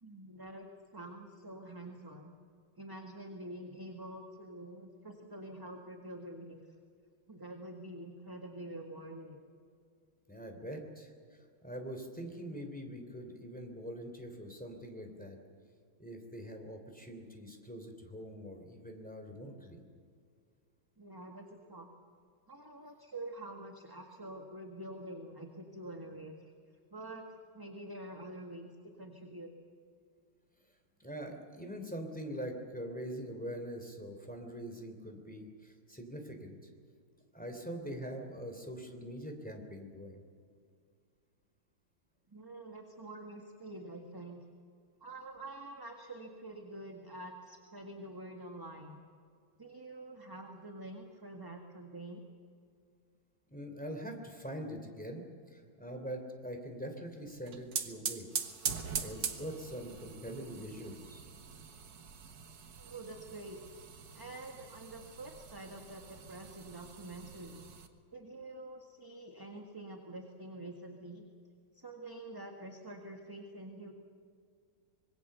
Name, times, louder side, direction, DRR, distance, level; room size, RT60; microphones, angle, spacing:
voice 1, 0.0-2.3 2.8-6.6 7.3-9.4 21.0-21.9 22.5-26.3 26.9-29.5 42.3-44.4 45.0-49.0 49.6-52.2 62.8-63.6 64.1-67.7 68.1-71.3 71.7-73.9, right 1 dB, 10° right, 2 dB, 1.5 m, -47 dB
voice 2, 10.3-15.4 16.0-19.8 31.0-36.7 37.3-40.2 53.5-58.3 59.0-61.2, equal, 5° left, 3 dB, 3.1 m, -43 dB
sound 1, 57.3-67.9, right 6 dB, 60° right, 2.0 m, -42 dB
25.5 x 22.0 x 6.9 m, 2.2 s
omnidirectional pair, 2.3 m